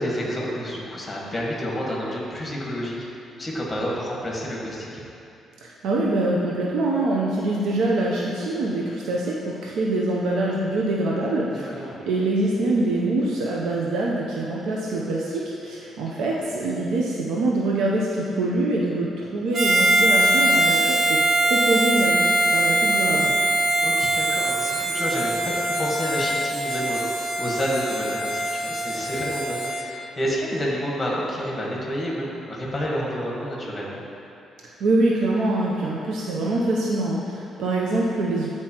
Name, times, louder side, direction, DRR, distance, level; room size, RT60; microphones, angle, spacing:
voice 1, 0.0-3.0 3.4-5.0 11.5-12.0 16.2-16.3 23.2-23.3 23.8-34.0, equal, 15° left, -4 dB, 1.3 m, -29 dB
voice 2, 5.6-21.2 21.5-22.2 22.5-23.3 34.8-38.5, right 2 dB, 85° right, -3 dB, 0.6 m, -24 dB
Harmonica, 19.5-29.8, right 1 dB, 35° right, 0.8 m, -22 dB
9.3 x 4.4 x 2.9 m, 2.7 s
cardioid pair, 140°, 0 cm